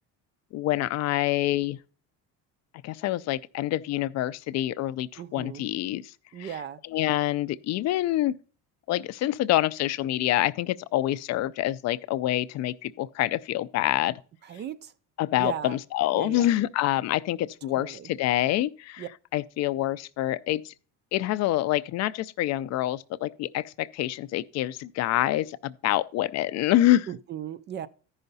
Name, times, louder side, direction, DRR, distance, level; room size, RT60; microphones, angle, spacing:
voice 1, 0.5-1.8 2.8-6.1 6.4-6.5 6.9-8.3 8.9-14.2 15.2-19.0 19.3-20.7 21.1-27.1, left 14 dB, 50° left, 0.4 m, -26 dB
voice 2, 5.2-5.6 6.3-6.8 14.4-14.9 15.4-15.8 16.1-16.5 17.6-18.1 19.0-19.1 27.1-27.9, right 9 dB, 35° right, 0.4 m, -37 dB
14.0 x 5.6 x 4.0 m
cardioid pair, 155°, 34 cm